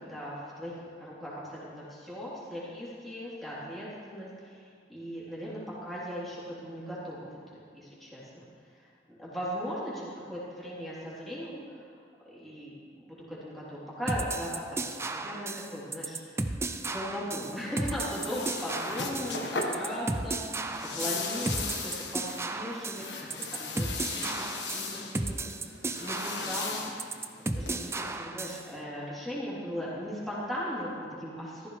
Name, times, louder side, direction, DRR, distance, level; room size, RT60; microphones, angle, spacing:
voice 1, 0.1-8.4 8.8-8.9 9.2-11.9 12.3-12.7 13.1-16.6 16.9-23.3 23.6-23.9 24.1-25.4 25.6-27.2 27.5-31.7, equal, ahead, -9 dB, 3.4 m, -38 dB
sound 1, 14.1-28.7, right 2 dB, 15° right, 0.5 m, -34 dB
sound 2, 17.4-28.1, left 4 dB, 70° left, 1.5 m, -38 dB
14.5 x 14.5 x 3.3 m, 2.3 s
head